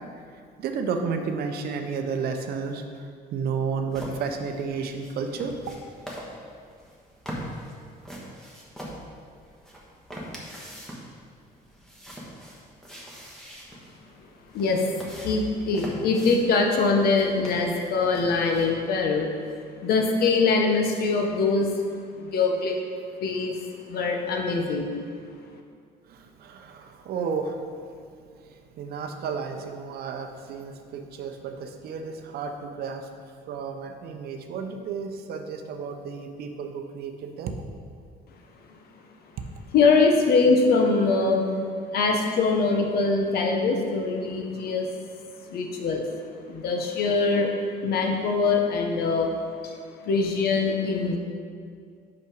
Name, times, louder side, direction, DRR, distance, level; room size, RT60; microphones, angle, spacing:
voice 1, 0.6-2.8 3.3-5.5 26.1-27.6 28.8-33.1 33.5-37.5, right 5 dB, 65° right, 5 dB, 0.7 m, -32 dB
sound 1, 3.9-18.7, equal, 5° left, 1.3 m, -42 dB
voice 2, 14.5-14.9 15.2-19.3 19.8-21.8 22.2-22.8 23.2-23.6 23.9-24.9 39.7-41.5 41.9-44.9 45.5-46.0 46.5-47.5 47.8-49.3 49.6-49.8 50.0-51.2, left 4 dB, 65° left, 2 dB, 0.9 m, -23 dB
5.4 x 5.2 x 5.1 m, 2.2 s
cardioid pair, 110°, 17 cm